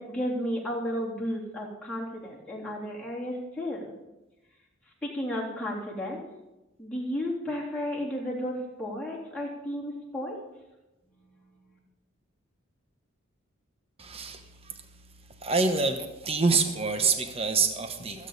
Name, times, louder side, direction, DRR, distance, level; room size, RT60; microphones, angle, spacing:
voice 1, 0.0-3.9 5.0-6.2 6.8-10.4, equal, 5° left, -5 dB, 3.3 m, -33 dB
voice 2, 14.0-14.7 15.4-18.3, right 4 dB, 30° right, 6 dB, 1.1 m, -26 dB
25.5 x 8.6 x 4.2 m, 1.0 s
head